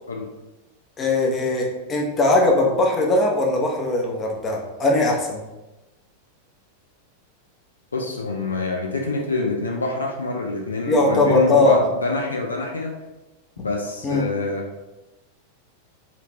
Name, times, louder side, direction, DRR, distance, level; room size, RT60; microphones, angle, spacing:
voice 1, 1.0-5.4 10.9-11.8 14.0-14.2, left 2 dB, 25° left, 0 dB, 0.8 m, -20 dB
voice 2, 7.9-12.9 13.6-14.7, left 2 dB, 75° left, 1 dB, 0.5 m, -26 dB
4.3 x 2.7 x 2.8 m, 1.0 s
figure-of-eight pair, 90°, 0 cm